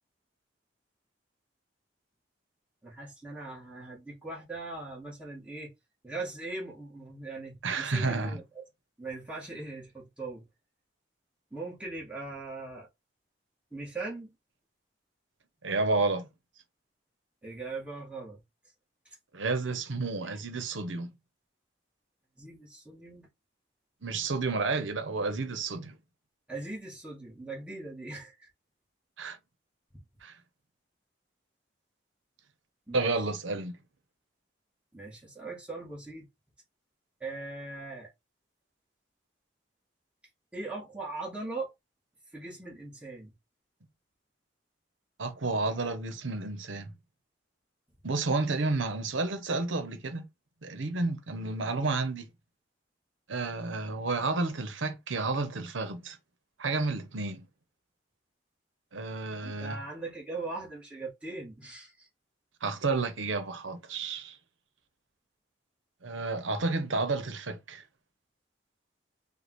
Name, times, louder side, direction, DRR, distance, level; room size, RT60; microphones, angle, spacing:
voice 1, 2.8-5.7 6.0-8.4 9.0-10.5 11.5-12.9 13.7-14.4 17.4-18.4 19.1-19.2 20.2-20.4 22.4-23.3 26.5-28.5 32.9-33.3 34.9-36.3 37.2-38.1 40.5-41.7 42.3-43.3 59.4-62.1, right 3 dB, 5° right, 1.8 m, -40 dB
voice 2, 7.6-8.4 15.6-16.3 19.3-21.1 24.0-26.0 29.2-29.4 30.2-30.3 32.9-33.8 45.2-46.9 48.0-50.3 50.6-52.3 53.3-56.2 56.6-57.5 58.9-59.8 62.6-64.4 66.0-67.8, right 3 dB, 90° right, 0.9 m, -31 dB
5.1 x 2.4 x 3.1 m
head